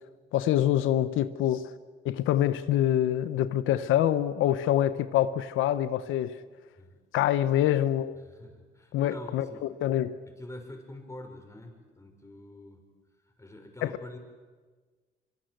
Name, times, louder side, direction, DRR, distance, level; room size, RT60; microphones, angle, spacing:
voice 1, 0.3-1.7 2.0-6.4 7.1-8.1 8.9-10.2 13.8-13.9, left 12 dB, 90° left, 13 dB, 0.9 m, -25 dB
voice 2, 8.2-9.7 10.3-12.8 13.4-14.2, left 1 dB, 15° left, 3 dB, 6.0 m, -46 dB
24.5 x 24.0 x 7.9 m, 1.4 s
cardioid pair, 90°, 20 cm